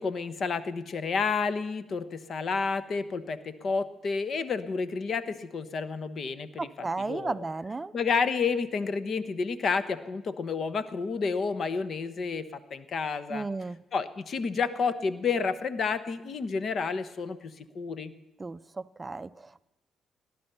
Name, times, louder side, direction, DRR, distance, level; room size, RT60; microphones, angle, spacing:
voice 1, 0.0-6.7 7.1-7.3 7.9-13.5 13.9-18.1, left 5 dB, 55° left, 13 dB, 1.0 m, -30 dB
voice 2, 6.6-7.9 13.3-13.8 18.4-19.6, right 3 dB, 25° right, 15 dB, 0.4 m, -34 dB
18.0 x 10.5 x 6.9 m, 0.94 s
cardioid pair, 75°, 0 cm